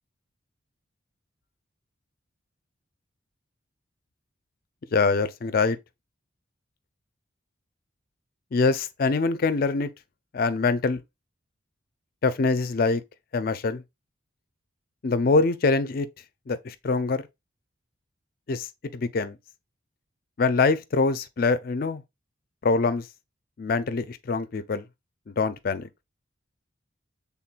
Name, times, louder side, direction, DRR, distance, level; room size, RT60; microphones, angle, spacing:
voice 1, 4.9-5.8 8.5-9.9 10.3-11.0 12.2-13.0 13.3-13.8 15.0-16.1 16.5-17.3 18.5-19.4 20.4-22.0 22.6-23.1 23.6-24.8 25.3-25.9, left 4 dB, 45° left, 0.4 m, -24 dB
5.9 x 3.5 x 2.4 m
head